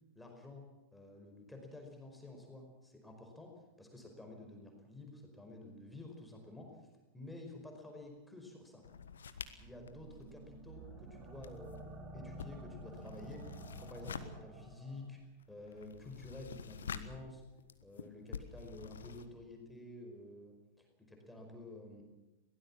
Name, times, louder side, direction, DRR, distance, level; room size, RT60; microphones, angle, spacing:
voice 1, 0.1-0.7 0.9-3.5 3.8-6.7 7.1-8.8 9.6-15.2 15.5-17.4 17.8-22.0, left 2 dB, 5° left, 2 dB, 4.9 m, -51 dB
sound 1, 8.8-11.0 11.3-19.3, left 7 dB, 70° left, 1.4 m, -49 dB
sound 2, 9.4-15.1, right 2 dB, 35° right, 4.4 m, -51 dB
22.5 x 17.5 x 7.4 m, 1.0 s
figure-of-eight pair, 90°, 0 cm